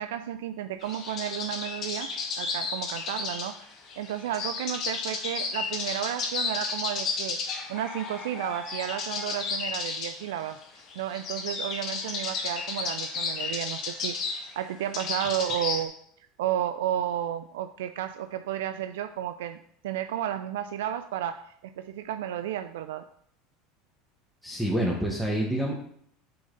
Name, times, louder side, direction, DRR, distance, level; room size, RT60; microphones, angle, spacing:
voice 1, 0.0-2.1 2.4-3.7 4.0-7.4 7.7-10.6 11.0-16.0 16.4-19.6 19.8-23.1, right 11 dB, 85° right, 9 dB, 0.3 m, -32 dB
sound 1, 0.8-15.8, left 4 dB, 45° left, 1.4 m, -33 dB
voice 2, 24.4-25.7, right 1 dB, ahead, -3 dB, 1.1 m, -27 dB
8.5 x 3.9 x 3.8 m, 0.66 s
supercardioid pair, 120°, 0 cm